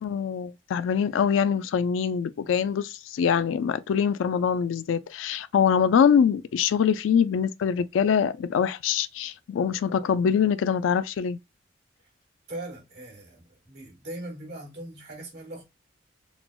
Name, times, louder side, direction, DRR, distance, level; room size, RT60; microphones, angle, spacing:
voice 1, 0.0-11.4, left 7 dB, 80° left, 0.3 m, -24 dB
voice 2, 12.5-15.6, right 1 dB, 60° right, 1.7 m, -40 dB
3.7 x 2.0 x 2.2 m
head